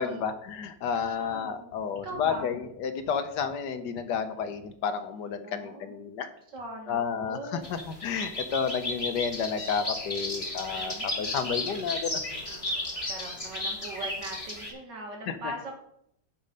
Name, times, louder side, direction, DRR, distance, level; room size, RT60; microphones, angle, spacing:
voice 1, 0.0-6.3 6.9-12.4 15.3-15.4, left 6 dB, 75° left, 9 dB, 1.4 m, -31 dB
voice 2, 0.9-1.8 2.0-2.5 5.4-6.0 6.5-7.8 10.8-11.4 13.0-15.8, right 1 dB, 80° right, 0 dB, 2.7 m, -41 dB
sound 1, 7.6-14.7, left 2 dB, 20° left, 2.4 m, -34 dB
10.5 x 5.5 x 5.3 m, 0.74 s
omnidirectional pair, 1.9 m